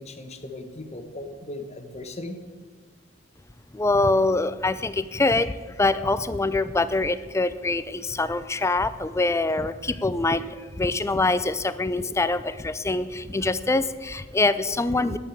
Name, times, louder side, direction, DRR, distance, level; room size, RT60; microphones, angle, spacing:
voice 1, 0.0-2.4, left 2 dB, 35° left, 6 dB, 1.2 m, -37 dB
voice 2, 3.7-15.2, left 2 dB, 15° left, 13 dB, 0.4 m, -24 dB
9.8 x 8.9 x 7.4 m, 1.4 s
head